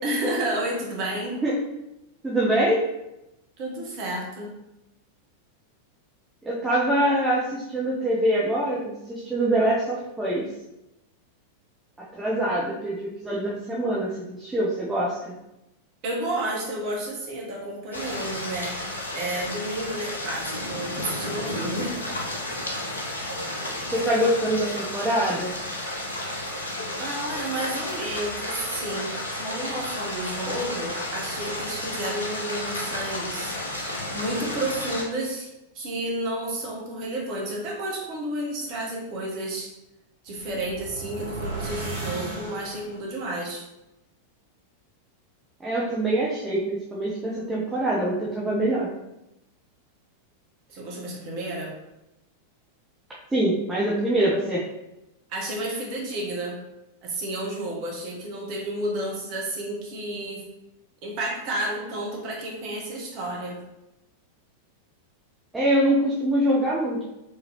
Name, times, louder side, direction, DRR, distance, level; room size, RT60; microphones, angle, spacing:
voice 1, 0.0-1.4 3.6-4.5 16.0-18.8 19.1-22.0 27.0-35.5 35.7-39.7 40.2-43.6 50.7-51.7 55.3-56.6 57.0-60.4 61.0-63.6, right 1 dB, 45° right, -1 dB, 1.2 m, -31 dB
voice 2, 2.2-2.8 6.4-10.4 12.1-14.1 14.4-15.3 23.9-25.5 45.6-48.9 53.3-54.6 65.5-67.1, right 1 dB, 10° right, -6 dB, 0.8 m, -24 dB
sound 1, 17.9-35.0, left 1 dB, 75° left, 0.7 m, -32 dB
sound 2, 40.3-43.1, right 3 dB, 65° right, 1.2 m, -35 dB
4.7 x 3.3 x 2.9 m, 0.92 s
figure-of-eight pair, 90°, 0 cm